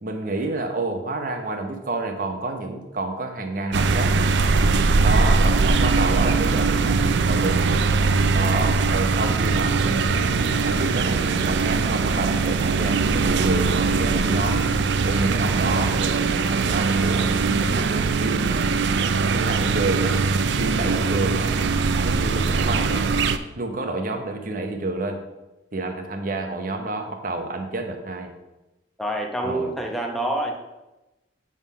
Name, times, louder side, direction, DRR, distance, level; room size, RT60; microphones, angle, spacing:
voice 1, 0.0-4.1 5.0-7.7 8.3-14.6 15.0-18.7 19.3-20.2 20.6-21.5 22.0-23.1 23.6-25.2 25.7-28.3 29.4-29.7, right 2 dB, 45° right, 4 dB, 0.9 m, -29 dB
sound 1, 3.7-23.4, right 4 dB, 70° right, 0.4 m, -21 dB
voice 2, 29.0-30.6, right 1 dB, ahead, 2 dB, 0.8 m, -27 dB
8.1 x 3.6 x 5.5 m, 1.0 s
head